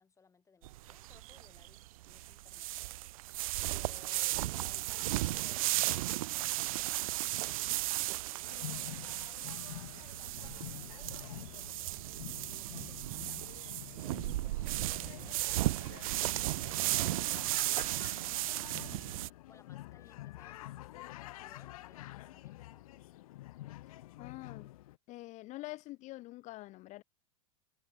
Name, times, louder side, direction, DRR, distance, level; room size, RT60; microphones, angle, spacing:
voice 1, 0.0-3.0 3.7-8.6 9.7-19.0 19.4-23.0, left 5 dB, 15° left, 6.0 m, -64 dB
sound 1, 0.6-19.3, right 17 dB, 80° right, 0.5 m, -35 dB
sound 2, 8.4-25.0, left 16 dB, 80° left, 0.5 m, -48 dB
voice 2, 23.9-24.7 25.1-27.0, left 18 dB, 45° left, 0.9 m, -46 dB
supercardioid pair, 120°, 18 cm